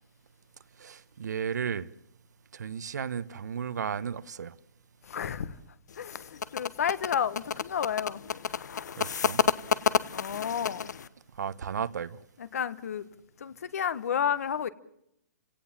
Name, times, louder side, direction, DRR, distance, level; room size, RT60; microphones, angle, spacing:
voice 1, 0.8-1.9 2.5-4.5 9.0-9.4 11.4-12.2, right 7 dB, 85° right, 1.3 m, -34 dB
voice 2, 5.0-5.6 6.0-8.3 10.1-10.9 12.4-13.1 13.4-14.7, left 8 dB, 60° left, 1.4 m, -31 dB
sound 1, 5.9-11.1, left 7 dB, 90° left, 1.1 m, -29 dB
30.0 x 17.5 x 7.4 m
hypercardioid pair, 175°, 9 cm